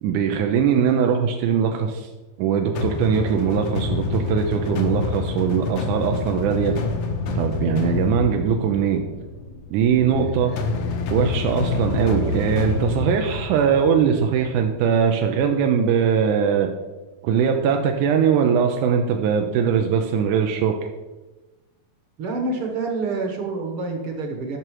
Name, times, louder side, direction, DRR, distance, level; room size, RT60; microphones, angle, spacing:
voice 1, 0.0-2.1 2.4-6.8 7.4-9.0 9.7-10.5 11.1-16.7 17.2-20.8, right 7 dB, 90° right, 3 dB, 2.2 m, -21 dB
sound 1, 2.8-14.7, left 4 dB, 65° left, 1.2 m, -27 dB
voice 2, 22.2-24.6, right 3 dB, 60° right, 3 dB, 1.6 m, -27 dB
10.5 x 6.2 x 4.7 m, 1.1 s
omnidirectional pair, 3.5 m